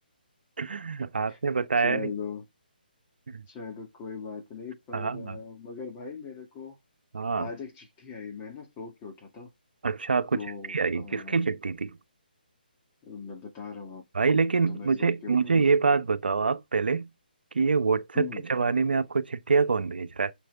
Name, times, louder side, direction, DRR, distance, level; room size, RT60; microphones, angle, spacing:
voice 1, 0.6-2.1 3.3-3.4 4.9-5.4 7.1-7.5 9.8-12.0 14.1-17.1 17.5-20.3, right 4 dB, 70° right, 0.9 m, -26 dB
voice 2, 1.8-2.4 3.5-6.8 7.4-9.5 10.3-11.4 13.1-14.4 14.7-15.5 18.1-18.4, left 5 dB, 20° left, 2.2 m, -39 dB
7.6 x 6.3 x 3.5 m
figure-of-eight pair, 150°, 5 cm